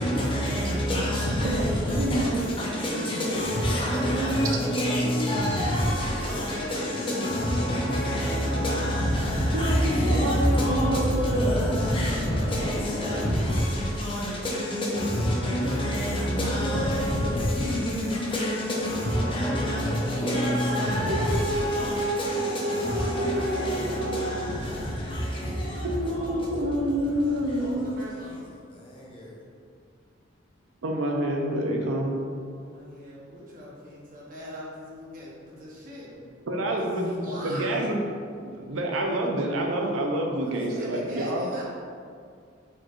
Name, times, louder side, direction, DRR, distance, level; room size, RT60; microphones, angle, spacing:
voice 1, 0.0-27.6 28.9-29.3 40.4-40.9, equal, 25° left, 0.7 m, -27 dB
voice 2, 1.4-3.9 6.1-7.2 27.6-28.4 32.6-36.3 37.1-37.9 40.8-41.6, equal, 45° right, 0.8 m, -40 dB
voice 3, 2.0-2.7 5.0-5.2 9.5-11.8 21.1-24.5 25.8-27.9 30.8-32.1 36.5-37.2 37.4-38.0 38.4-41.5, right 1 dB, 90° right, 0.5 m, -28 dB
4.3 x 3.0 x 2.4 m
head